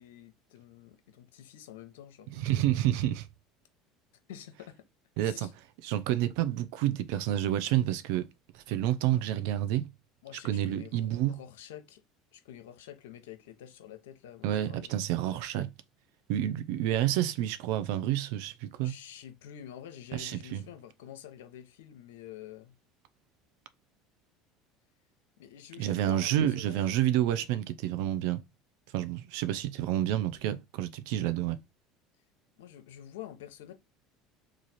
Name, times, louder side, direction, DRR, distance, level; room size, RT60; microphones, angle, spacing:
voice 1, 0.0-2.3 4.3-4.8 5.2-5.5 10.2-12.0 12.3-15.0 18.8-22.8 25.4-27.0 32.6-33.7, left 11 dB, 90° left, 0.7 m, -48 dB
voice 2, 2.3-3.3 5.2-5.5 5.8-8.3 8.7-9.9 10.4-11.4 14.4-15.7 16.3-18.9 20.1-20.6 25.8-28.4 28.9-31.6, right 12 dB, 75° right, 0.5 m, -29 dB
3.2 x 2.4 x 4.0 m
supercardioid pair, 100°, 0 cm